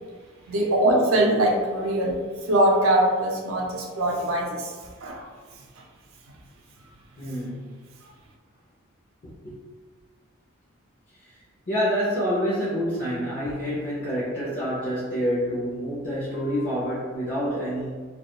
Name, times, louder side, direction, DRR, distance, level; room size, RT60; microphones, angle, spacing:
voice 1, 0.5-5.3 5.6-5.8 7.4-7.5 8.0-8.1, right 1 dB, 80° right, 0 dB, 0.5 m, -23 dB
voice 2, 7.2-7.8 9.4-9.6 11.2-11.3 11.7-18.0, equal, 40° left, -8 dB, 0.5 m, -27 dB
2.2 x 2.2 x 2.8 m, 1.5 s
head